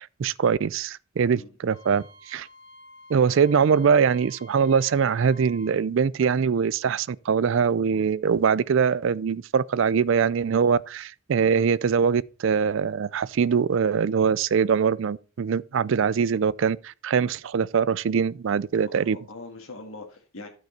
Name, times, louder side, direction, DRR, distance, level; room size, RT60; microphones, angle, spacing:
voice 1, 0.0-2.5 3.1-19.2, right 6 dB, 65° right, 0.4 m, -23 dB
Wind instrument woodwind instrument, 1.7-5.8, equal, 85° right, 2.6 m, -50 dB
voice 2, 18.9-20.5, left 2 dB, 80° left, 1.6 m, -42 dB
11.5 x 6.2 x 4.3 m
head